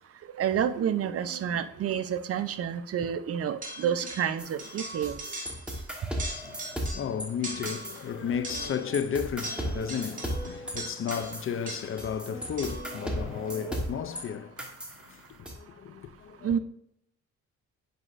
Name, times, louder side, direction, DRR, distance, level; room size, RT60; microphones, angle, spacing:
voice 1, 0.4-5.2 16.4-16.6, right 8 dB, 50° right, 0.5 m, -29 dB
sound 1, 3.6-4.3 4.6-5.8 6.1-7.1 7.4-8.0 8.4-12.1 12.6-13.0, right 2 dB, 25° right, 2.1 m, -40 dB
sound 2, 4.4-7.3 7.6-8.7 8.9-14.2 14.6-15.5, equal, 5° right, 1.2 m, -36 dB
voice 2, 6.4-14.7 15.1-16.6, left 7 dB, 45° left, 0.5 m, -34 dB
sound 3, 8.2-13.8, right 1 dB, 25° left, 2.5 m, -46 dB
8.0 x 5.0 x 2.5 m
cardioid pair, 90°, 30 cm